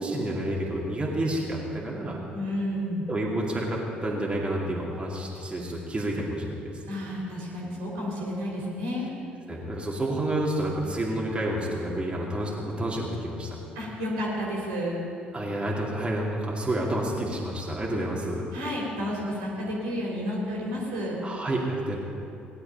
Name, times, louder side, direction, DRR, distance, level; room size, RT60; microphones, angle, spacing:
voice 1, 0.0-2.2 3.1-6.7 9.5-13.6 15.3-18.4 21.2-22.0, right 1 dB, 20° right, -4 dB, 2.5 m, -29 dB
voice 2, 2.3-3.1 6.9-9.1 13.8-15.0 18.5-21.2, equal, 70° right, -4 dB, 3.6 m, -31 dB
18.0 x 11.0 x 5.3 m, 2.7 s
figure-of-eight pair, 50°, 5 cm